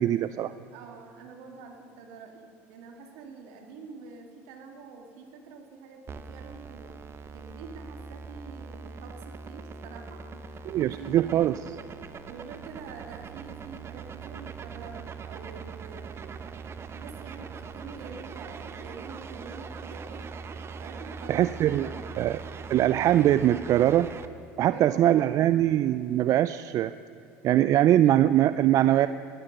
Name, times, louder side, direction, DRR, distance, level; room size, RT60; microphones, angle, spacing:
voice 1, 0.0-0.5 10.7-11.5 21.3-21.9 22.2-22.4 22.7-24.1 24.6-26.9 27.4-29.1, right 12 dB, 55° right, 14 dB, 0.4 m, -22 dB
voice 2, 0.7-7.0 7.3-11.6 12.2-16.4 16.9-20.4 20.8-22.1 24.6-25.4, right 4 dB, 80° right, 4 dB, 2.0 m, -46 dB
sound 1, 6.1-24.3, right 5 dB, 35° right, 0.9 m, -41 dB
16.0 x 11.0 x 6.5 m, 2.8 s
supercardioid pair, 85°, 7 cm